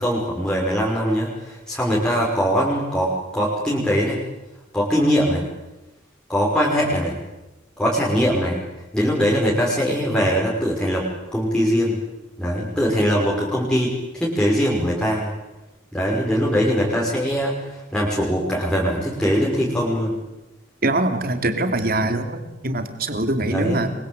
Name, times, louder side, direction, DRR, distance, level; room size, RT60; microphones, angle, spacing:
voice 1, 0.0-4.2 4.7-5.4 6.3-7.2 7.8-8.6 8.9-11.1 11.3-12.0 12.4-15.3 15.9-20.2 22.0-22.1 23.5-23.8, equal, 5° left, -5 dB, 5.9 m, -21 dB
voice 2, 20.8-23.9, right 2 dB, 55° right, 8 dB, 3.1 m, -23 dB
29.5 x 24.5 x 8.2 m, 1.0 s
head